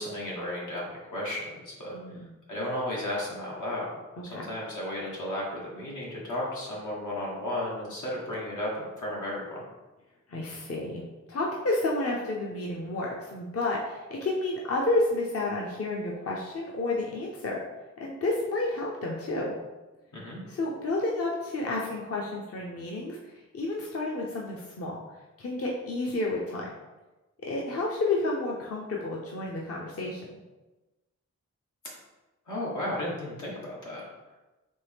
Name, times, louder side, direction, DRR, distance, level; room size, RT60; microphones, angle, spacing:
voice 1, 0.0-2.2 2.5-3.9 4.3-9.6 20.1-20.4 32.5-34.0, left 1 dB, 85° left, -5 dB, 1.5 m, -34 dB
voice 2, 1.9-2.3 4.3-4.4 10.3-17.6 18.0-19.6 20.5-25.0 25.4-26.7 27.4-30.3, left 2 dB, 50° left, -3 dB, 0.7 m, -30 dB
4.3 x 3.1 x 3.5 m, 1.1 s
wide cardioid pair, 85°, 30 cm